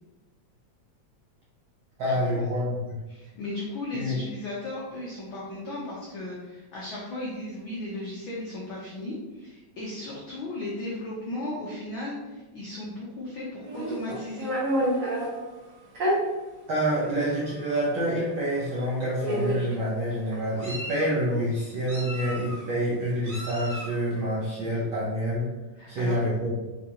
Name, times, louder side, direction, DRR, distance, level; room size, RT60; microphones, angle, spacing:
voice 1, 2.0-2.9 3.9-4.2 16.7-25.5 25.9-26.7, equal, 65° right, -7 dB, 1.2 m, -27 dB
voice 2, 3.1-14.5 25.8-26.2, left 1 dB, 85° left, -5 dB, 1.1 m, -36 dB
Meow, 13.6-15.3 15.9-16.2 17.0-17.1 17.5-17.7 18.7-18.8 19.2-19.7 20.3-21.1 21.9-22.6 23.2-23.9, right 1 dB, 45° right, 1.8 m, -29 dB
5.0 x 3.3 x 2.8 m, 1.2 s
omnidirectional pair, 3.3 m